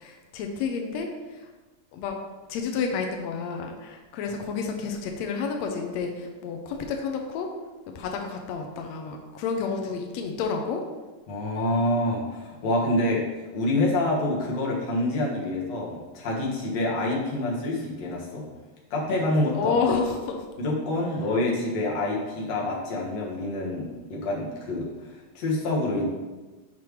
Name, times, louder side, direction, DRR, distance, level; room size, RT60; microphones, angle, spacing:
voice 1, 0.0-1.5 1.9-2.2 2.5-7.5 7.9-10.8 19.5-20.4, left 5 dB, 85° left, 3 dB, 1.5 m, -30 dB
voice 2, 11.3-13.2 13.5-18.4 18.9-19.7 20.6-26.0, left 1 dB, 55° left, -3 dB, 2.4 m, -27 dB
8.7 x 5.9 x 3.2 m, 1.2 s
omnidirectional pair, 3.9 m